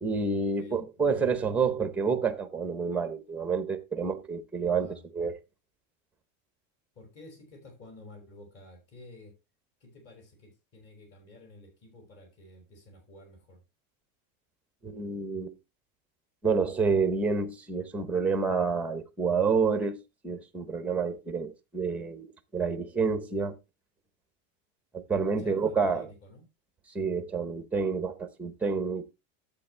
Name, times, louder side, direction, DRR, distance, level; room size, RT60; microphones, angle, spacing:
voice 1, 0.0-5.4 14.8-15.5 16.4-20.0 20.2-23.6 24.9-26.1 26.9-29.1, right 5 dB, 5° right, 0.8 m, -28 dB
voice 2, 0.6-1.2 4.8-5.0 7.0-9.4 9.8-13.6 25.2-26.5, left 2 dB, 35° left, 5.4 m, -51 dB
11.5 x 8.3 x 3.3 m
supercardioid pair, 180°, 39 cm